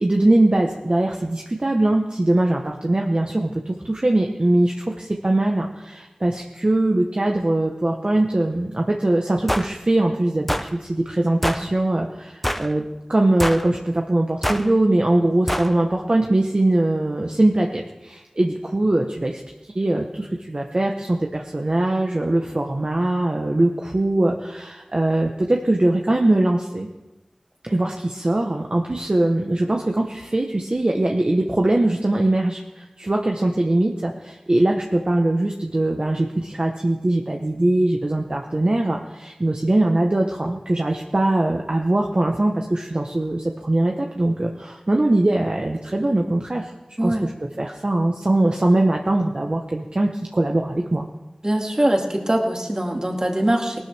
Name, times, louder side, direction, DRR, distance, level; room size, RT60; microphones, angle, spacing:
voice 1, 0.0-19.4 19.7-26.9 27.6-46.7 47.0-47.3 47.6-51.0, right 1 dB, 50° right, 1 dB, 1.1 m, -21 dB
sound 1, 9.5-9.7 10.5-10.7 11.4-11.7 12.4-12.7 13.4-13.7 14.4-14.7 15.5-15.7, equal, 5° left, 0.7 m, -24 dB
voice 2, 51.4-53.8, right 1 dB, 35° right, 1 dB, 2.2 m, -22 dB
19.0 x 12.5 x 3.4 m, 1.0 s
wide cardioid pair, 45°, 2 cm